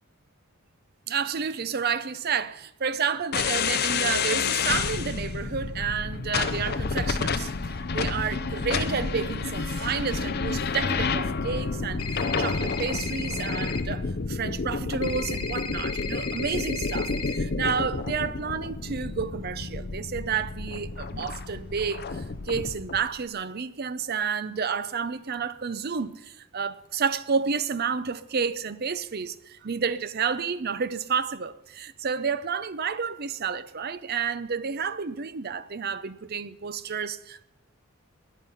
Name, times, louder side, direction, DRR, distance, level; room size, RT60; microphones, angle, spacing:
voice 1, 1.1-26.2 26.5-37.4, right 6 dB, 45° right, 0.6 m, -30 dB
sound 1, 3.3-23.0, left 4 dB, 45° left, 0.6 m, -30 dB
sound 2, 12.0-13.8 15.0-17.4, left 5 dB, 75° left, 1.2 m, -36 dB
20.0 x 10.0 x 5.7 m
head